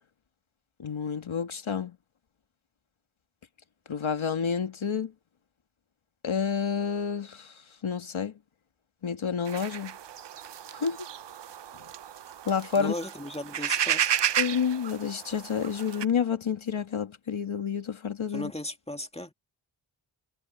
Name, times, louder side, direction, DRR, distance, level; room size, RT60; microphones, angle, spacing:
voice 1, 0.8-1.9 3.9-5.1 6.2-7.5 7.8-8.3 9.0-9.9 10.7-11.0 12.5-12.9 14.4-18.5, left 7 dB, 75° left, 1.6 m, -29 dB
sound 1, 9.5-16.0, right 9 dB, 60° right, 0.6 m, -32 dB
voice 2, 12.8-14.2 18.3-19.3, left 1 dB, 10° left, 2.1 m, -36 dB
wide cardioid pair, 60°, 48 cm